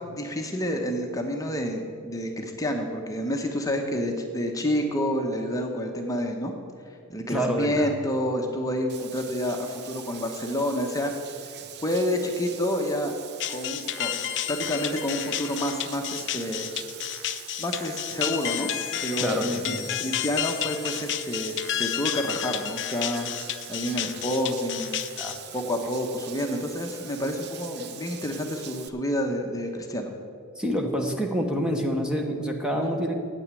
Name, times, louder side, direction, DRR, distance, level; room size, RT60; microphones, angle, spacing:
voice 1, 0.0-6.5 7.1-11.1 11.4-11.5 11.8-13.1 13.5-16.7 17.6-18.7 19.0-23.3 23.7-25.0 25.5-30.1, equal, 15° left, 2 dB, 0.9 m, -29 dB
voice 2, 7.3-7.9 19.2-20.0 25.2-25.4 30.6-33.2, equal, 5° right, 2 dB, 1.0 m, -27 dB
Bathtub (filling or washing), 8.9-28.9, right 9 dB, 50° right, 0.6 m, -43 dB
sound 1, 13.4-25.4, left 12 dB, 55° left, 0.5 m, -31 dB
9.2 x 8.5 x 8.3 m, 2.3 s
head